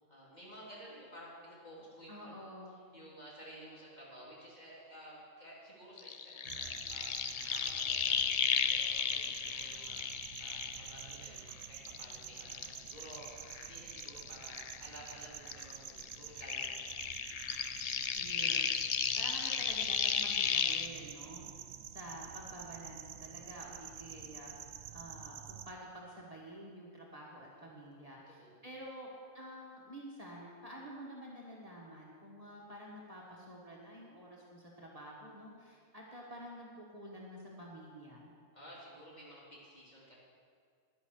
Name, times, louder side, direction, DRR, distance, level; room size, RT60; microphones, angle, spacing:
voice 1, 0.1-2.3 2.9-11.4 11.7-16.9 27.6-28.5 38.5-40.2, equal, 35° left, -6 dB, 3.3 m, -53 dB
voice 2, 2.1-2.7 18.1-18.7 19.2-21.4 21.9-24.5 24.9-29.1 29.3-38.3, equal, 30° right, -4 dB, 1.6 m, -49 dB
sound 1, 6.0-11.5 11.9-15.2 15.5-20.9, left 7 dB, 80° left, 0.3 m, -34 dB
sound 2, 6.5-25.7, right 9 dB, 70° right, 0.9 m, -49 dB
10.5 x 10.5 x 6.5 m, 2.1 s
omnidirectional pair, 1.3 m